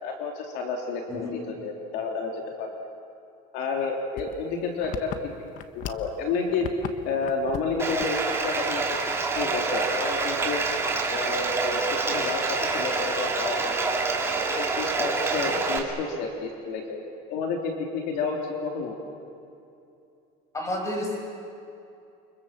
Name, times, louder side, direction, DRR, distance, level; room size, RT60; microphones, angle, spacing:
voice 1, 0.0-2.8 3.5-5.1 5.7-6.7 7.0-9.0 9.3-10.6 11.1-13.8 14.4-17.0 17.3-19.0, left 4 dB, 65° left, 1 dB, 3.3 m, -30 dB
sound 1, 4.2-6.1 6.4-6.9 7.2-7.7 8.0-8.2 8.6-8.7 9.3-9.8, left 9 dB, 50° left, 1.4 m, -36 dB
Bathtub (filling or washing), 7.8-15.8, right 3 dB, 15° right, 2.8 m, -27 dB
voice 2, 20.5-21.2, left 1 dB, 15° left, 0 dB, 6.6 m, -30 dB
29.5 x 25.0 x 7.5 m, 2.6 s
cardioid pair, 155°, 18 cm